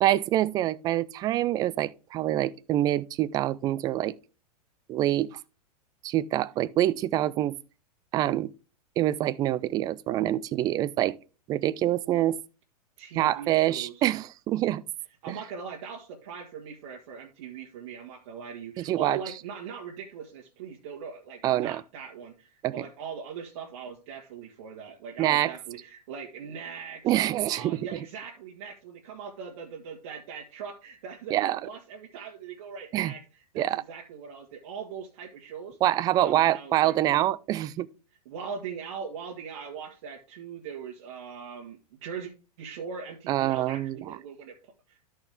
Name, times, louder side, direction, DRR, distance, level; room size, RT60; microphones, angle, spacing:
voice 1, 0.0-4.1 4.9-5.4 6.0-7.6 8.1-8.5 9.0-11.2 11.5-12.4 13.2-14.8 15.3-15.4 18.8-19.2 21.4-21.8 22.6-22.7 25.2-25.5 27.0-27.9 31.3-31.6 32.9-33.1 33.6-33.8 35.8-37.9 43.3-44.2, right 13 dB, 20° right, 0.3 m, -25 dB
voice 2, 13.0-14.0 15.2-27.1 27.5-35.8 36.1-37.2 38.2-42.3 42.6-44.6 44.9-45.0, right 6 dB, 50° right, 1.4 m, -40 dB
13.0 x 4.5 x 3.4 m
figure-of-eight pair, 100°, 20 cm